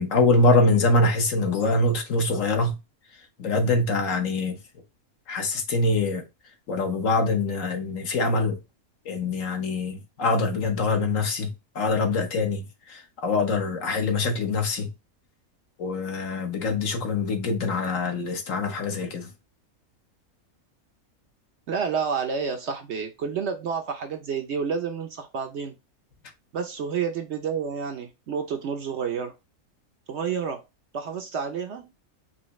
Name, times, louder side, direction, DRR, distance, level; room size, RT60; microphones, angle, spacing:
voice 1, 0.0-2.7 3.4-4.5 5.3-6.2 6.7-8.6 9.1-11.5 11.7-12.6 12.9-14.9 15.8-19.3, left 2 dB, 65° left, 1.3 m, -24 dB
voice 2, 21.7-25.7 26.5-29.3 30.1-30.6 30.9-31.8, right 6 dB, 60° right, 0.8 m, -29 dB
5.6 x 2.7 x 3.1 m
omnidirectional pair, 1.5 m